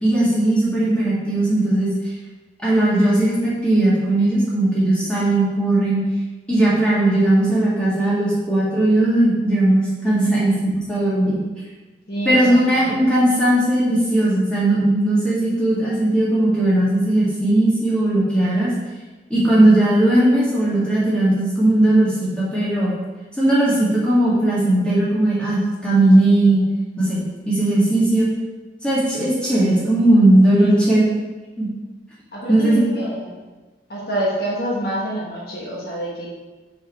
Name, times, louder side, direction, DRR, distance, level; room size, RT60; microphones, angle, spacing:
voice 1, 0.0-1.9 2.6-6.0 6.5-10.5 10.9-11.4 12.2-18.7 19.3-22.9 23.3-26.6 27.0-28.3 28.8-31.0 31.6-31.7 32.5-32.8, right 1 dB, 5° left, -8 dB, 1.8 m, -17 dB
voice 2, 10.0-10.4 12.1-13.0 30.5-31.0 32.3-33.3 33.9-36.3, right 1 dB, 55° left, -4 dB, 1.2 m, -27 dB
5.0 x 4.8 x 4.3 m, 1.2 s
head